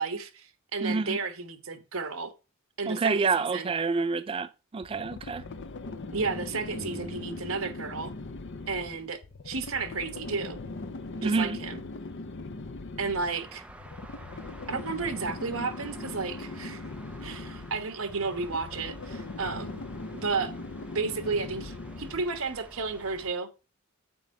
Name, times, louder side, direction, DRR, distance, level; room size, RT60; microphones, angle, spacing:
voice 1, 0.0-2.3 2.8-3.7 6.1-8.1 8.7-9.2 9.4-10.6 11.2-11.8 13.0-13.6 14.7-16.8 17.2-19.8 20.1-20.5 20.9-23.5, right 4 dB, 85° right, 1.3 m, -32 dB
voice 2, 0.8-1.2 2.9-5.4 11.2-11.6, right 4 dB, 25° right, 0.3 m, -28 dB
sound 1, 4.8-22.4, left 2 dB, 60° left, 0.7 m, -40 dB
sound 2, 6.8-8.3 8.5-10.3, equal, 50° right, 0.9 m, -50 dB
sound 3, 13.3-23.3, right 1 dB, 5° right, 0.8 m, -50 dB
6.9 x 4.7 x 6.5 m
head